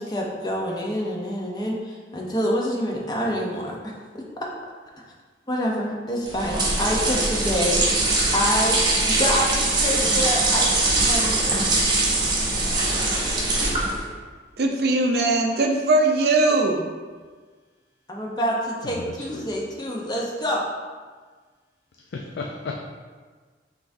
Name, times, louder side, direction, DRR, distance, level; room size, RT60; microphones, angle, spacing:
voice 1, 0.0-3.8 4.1-4.2 5.5-8.8 9.1-11.6 18.1-20.6, equal, 20° left, 0.7 m, -27 dB
sound 1, 6.2-14.1, right 2 dB, 25° right, 0.8 m, -22 dB
voice 2, 14.6-16.8, right 2 dB, 55° right, 0.5 m, -20 dB
voice 3, 18.8-19.5 22.1-22.8, left 3 dB, 75° left, 0.4 m, -34 dB
5.7 x 3.5 x 2.6 m
head